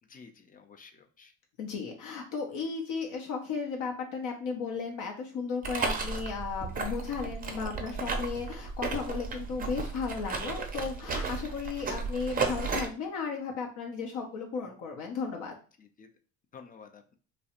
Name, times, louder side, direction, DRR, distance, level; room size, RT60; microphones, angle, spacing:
voice 1, 0.1-1.3 11.3-11.5 15.8-16.1 16.5-17.1, left 5 dB, 25° left, 7 dB, 0.4 m, -52 dB
voice 2, 1.6-15.5, left 5 dB, 65° left, 1 dB, 0.7 m, -35 dB
sound 1, 5.6-12.9, right 4 dB, 25° right, 0.5 m, -34 dB
2.3 x 2.0 x 2.8 m, 0.40 s
supercardioid pair, 75°, 33 cm